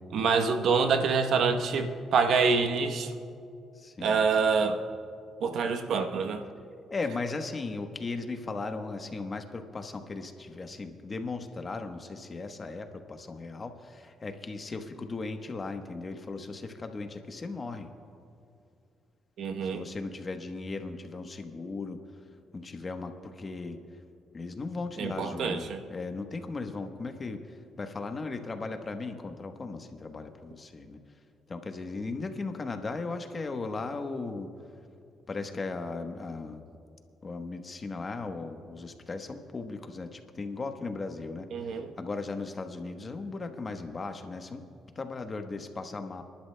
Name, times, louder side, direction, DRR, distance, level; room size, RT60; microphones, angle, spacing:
voice 1, 0.1-3.1 4.0-4.8 5.4-6.4 19.4-19.8 25.0-25.8 41.5-41.9, right 5 dB, 70° right, 7 dB, 0.9 m, -26 dB
voice 2, 3.7-4.2 6.9-17.9 19.6-22.0 22.5-23.8 24.3-31.0 31.5-34.5 35.3-36.6 37.2-44.6 44.9-46.2, left 3 dB, 35° left, 6 dB, 1.1 m, -37 dB
30.0 x 11.5 x 2.2 m, 2.4 s
cardioid pair, 90°, 0 cm